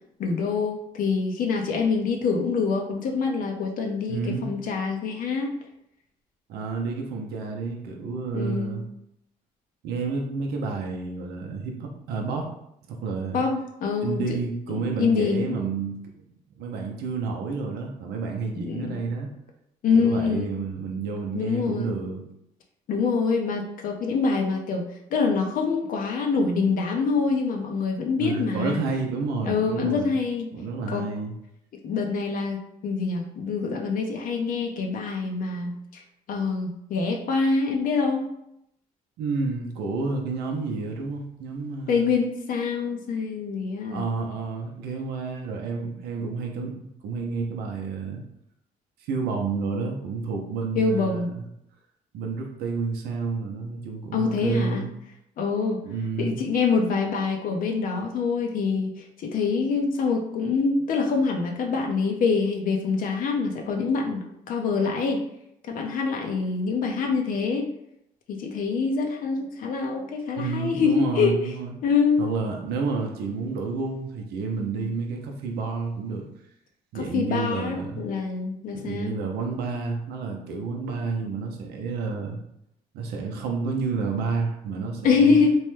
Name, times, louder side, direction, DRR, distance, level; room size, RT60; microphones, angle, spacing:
voice 1, 0.2-5.5 8.3-8.8 13.3-14.4 14.7-15.6 18.5-19.0 19.8-20.5 21.3-21.9 22.9-24.9 25.1-28.8 29.4-30.5 30.9-31.1 31.8-36.0 36.3-38.3 41.9-44.1 50.7-51.3 54.1-54.9 55.4-55.8 56.2-65.2 65.6-67.7 68.3-71.3 71.8-72.2 76.9-79.1 81.2-81.4 85.0-85.6, left 4 dB, 60° left, 2 dB, 0.5 m, -25 dB
voice 2, 4.1-4.5 6.5-8.8 9.8-12.5 12.9-13.4 14.0-16.2 16.6-19.3 19.9-22.2 28.2-30.1 30.5-31.3 39.2-42.1 43.9-46.8 47.0-48.2 49.0-51.4 52.1-54.9 55.9-56.4 70.4-71.7 72.2-76.2 76.9-78.0 78.7-82.4 82.9-85.4, right 4 dB, 80° right, 2 dB, 0.6 m, -30 dB
3.0 x 2.2 x 3.1 m, 0.79 s
supercardioid pair, 75°, 16 cm